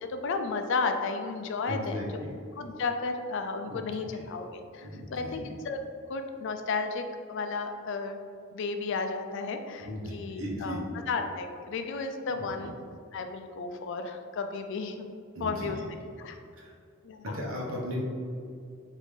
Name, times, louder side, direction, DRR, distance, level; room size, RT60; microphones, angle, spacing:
voice 1, 0.0-2.2 2.6-5.8 6.1-8.3 8.5-10.8 11.1-12.7 13.1-15.1 15.4-16.4 17.0-17.4, left 4 dB, 65° left, 7 dB, 0.4 m, -33 dB
voice 2, 1.7-2.3 3.7-3.8 4.1-4.2 4.8-5.4 9.8-10.8 12.3-12.7 15.3-15.7 16.5-16.7 17.2-18.0, equal, 90° right, -3 dB, 1.0 m, -36 dB
5.1 x 2.7 x 3.2 m, 2.4 s
head